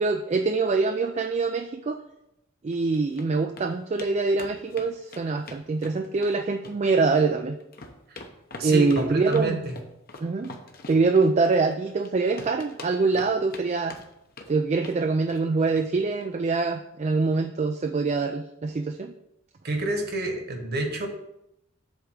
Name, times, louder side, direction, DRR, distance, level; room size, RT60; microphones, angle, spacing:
voice 1, 0.0-2.0 2.6-7.6 8.6-9.6 10.2-10.5 10.9-14.0 14.5-19.1, right 4 dB, 35° right, 6 dB, 0.3 m, -24 dB
sound 1, 2.7-3.3 3.6-3.7 4.0-4.1 4.4-6.3 6.6-7.3 7.6-12.1 12.4-13.6 13.9-14.5 14.8-15.0 15.3-15.5 15.8-15.9 16.2-16.3, left 2 dB, 45° left, 0.9 m, -42 dB
voice 2, 8.6-9.7 19.6-21.1, right 2 dB, 50° right, 3 dB, 1.4 m, -28 dB
7.9 x 3.6 x 6.4 m, 0.83 s
head